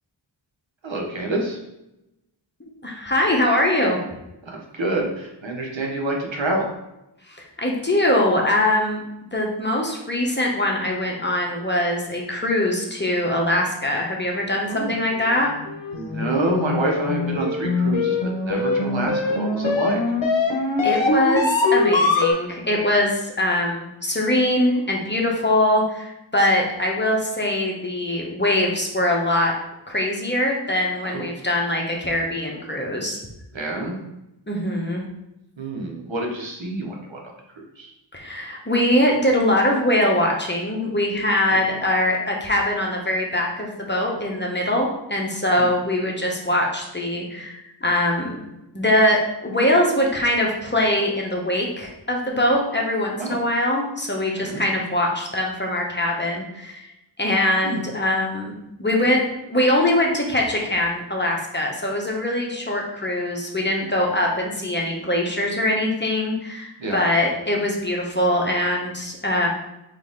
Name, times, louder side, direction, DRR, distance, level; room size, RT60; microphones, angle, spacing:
voice 1, 0.8-1.6 4.4-6.7 14.7-14.9 15.9-20.0 31.0-31.2 33.5-34.0 35.6-37.2 37.6-37.9 45.6-45.7 53.2-53.4 54.3-54.6 57.6-57.8 66.8-67.0, right 2 dB, 75° right, 0 dB, 1.0 m, -27 dB
voice 2, 2.6-4.0 7.3-9.0 9.3-15.5 20.8-29.5 29.9-33.2 34.5-35.0 38.1-48.4 48.7-56.9 57.2-58.5 58.8-69.5, left 1 dB, 25° left, -1 dB, 0.9 m, -22 dB
sound 1, 15.3-22.3, left 3 dB, 70° left, 0.8 m, -22 dB
4.0 x 3.2 x 3.7 m, 0.89 s
wide cardioid pair, 45°, 46 cm